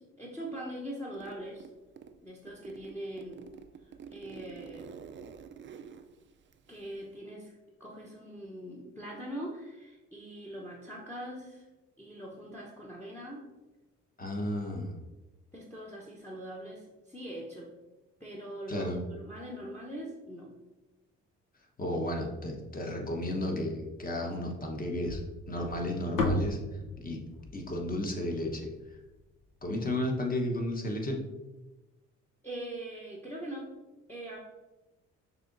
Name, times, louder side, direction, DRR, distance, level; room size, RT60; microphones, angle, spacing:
voice 1, 0.0-1.7 2.2-3.4 3.8-5.0 6.7-7.5 7.8-11.7 12.0-13.5 15.5-17.7 18.2-20.5 32.4-33.7 34.1-34.4, right 1 dB, 5° left, -3 dB, 0.8 m, -42 dB
Zipper (clothing), 1.1-2.2 2.5-7.2, right 7 dB, 40° right, 0.4 m, -48 dB
voice 2, 14.2-14.9 18.7-19.0 21.8-25.2 25.5-26.6 27.0-27.2 27.5-28.7 29.6-31.2, left 1 dB, 30° left, 1 dB, 1.0 m, -33 dB
sound 1, 25.1-29.4, left 2 dB, 80° left, 0.9 m, -35 dB
6.6 x 2.8 x 2.6 m, 1.1 s
cardioid pair, 75°, 30 cm